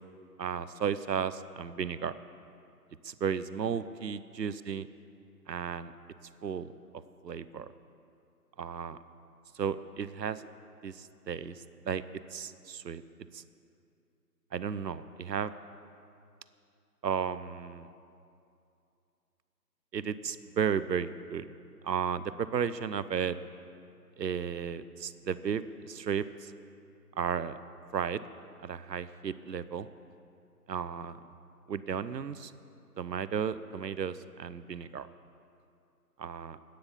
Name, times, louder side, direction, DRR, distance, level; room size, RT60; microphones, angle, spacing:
voice 1, 0.4-2.1 3.0-4.9 5.5-5.9 6.4-6.7 7.2-7.7 8.6-9.0 9.6-10.4 10.8-12.0 12.3-13.0 13.3-13.4 14.5-15.5 17.0-17.9 19.9-21.4 21.8-23.4 24.2-26.5 27.2-27.6 27.9-28.2 28.6-29.9 30.7-31.2 31.7-32.5 33.0-35.1 36.2-36.6, right 7 dB, 80° right, 15 dB, 0.8 m, -34 dB
10.5 x 9.7 x 7.1 m, 2.5 s
figure-of-eight pair, 165°, 49 cm